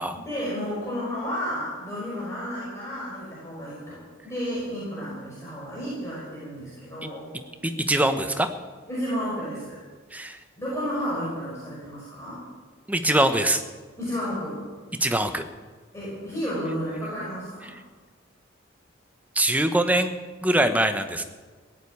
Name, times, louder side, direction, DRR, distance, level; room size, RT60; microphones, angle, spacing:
voice 1, 0.1-7.2 8.9-9.8 10.6-12.4 14.0-14.6 15.9-17.7, equal, 15° left, -8 dB, 5.6 m, -32 dB
voice 2, 7.6-8.5 10.1-10.4 12.9-13.6 15.0-15.5 17.6-17.7 19.3-20.1 20.4-21.2, right 1 dB, 10° right, 8 dB, 1.0 m, -23 dB
16.5 x 8.5 x 9.4 m, 1.4 s
head